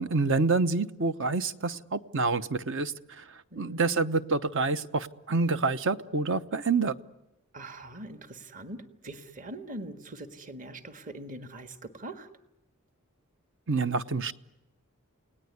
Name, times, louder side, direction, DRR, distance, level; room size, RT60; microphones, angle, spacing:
voice 1, 0.0-3.2 3.6-6.9 13.7-14.3, right 4 dB, 60° right, 12 dB, 0.9 m, -27 dB
voice 2, 3.5-4.0 7.5-12.3, right 1 dB, 40° right, 9 dB, 1.6 m, -42 dB
29.5 x 18.5 x 9.5 m, 0.97 s
head